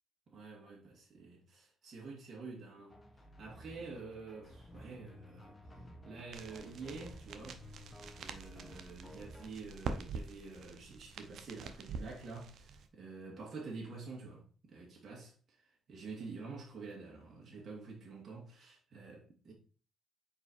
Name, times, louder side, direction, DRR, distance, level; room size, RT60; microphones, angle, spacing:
voice 1, 0.3-3.0 3.4-5.6 6.0-7.6 8.2-19.5, right 4 dB, 50° right, 2.6 m, -48 dB
sound 1, 2.9-9.5, left 1 dB, 25° left, 1.4 m, -54 dB
sound 2, 6.3-12.9, right 5 dB, 65° right, 0.8 m, -46 dB
4.9 x 4.8 x 4.7 m
cardioid pair, 90°, 0 cm